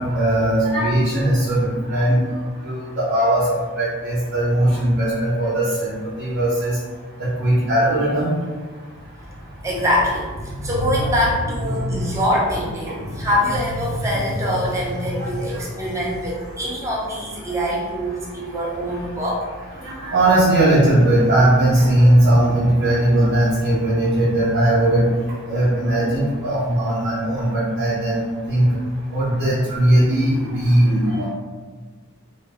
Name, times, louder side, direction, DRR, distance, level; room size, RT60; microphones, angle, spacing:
voice 1, 0.0-2.2 2.6-3.4 3.8-6.8 7.2-8.3 15.1-15.3 19.8-25.1 25.5-28.2 28.5-28.7 29.1-31.3, right 1 dB, 55° right, -11 dB, 0.6 m, -18 dB
voice 2, 9.2-19.5, equal, 15° right, -5 dB, 0.4 m, -23 dB
2.2 x 2.0 x 3.4 m, 1.4 s
head